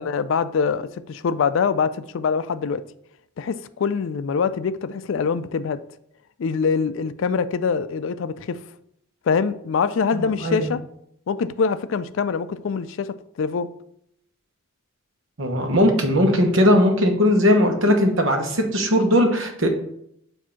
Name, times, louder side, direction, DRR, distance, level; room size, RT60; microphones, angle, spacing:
voice 1, 0.0-2.8 3.4-5.8 6.4-8.6 9.3-10.8 11.3-13.7, left 5 dB, 60° left, 13 dB, 0.3 m, -24 dB
voice 2, 10.1-10.7 15.4-19.7, equal, 65° right, 4 dB, 1.1 m, -19 dB
7.3 x 2.7 x 5.7 m, 0.73 s
head